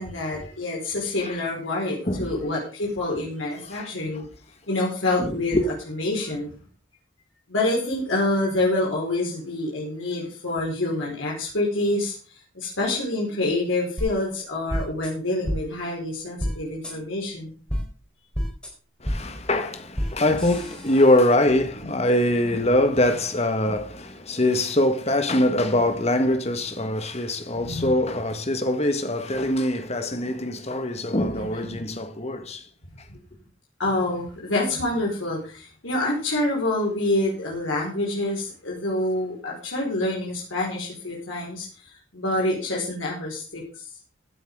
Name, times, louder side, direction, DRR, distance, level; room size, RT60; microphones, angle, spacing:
voice 1, 0.0-4.2 4.7-5.6 5.9-6.5 7.5-17.6 27.6-28.0 31.3-31.8 33.8-43.9, left 2 dB, 80° left, 4.8 m, -27 dB
voice 2, 5.2-5.6 19.0-32.7, left 1 dB, 35° left, 1.6 m, -23 dB
sound 1, 14.0-14.1 14.7-15.1 15.4-15.6 16.4-16.5 16.8-16.9 17.7-17.8 18.3-18.7 19.0-19.2 19.9-20.1 20.4-21.3, equal, 5° left, 4.2 m, -28 dB
15.5 x 10.0 x 3.7 m
head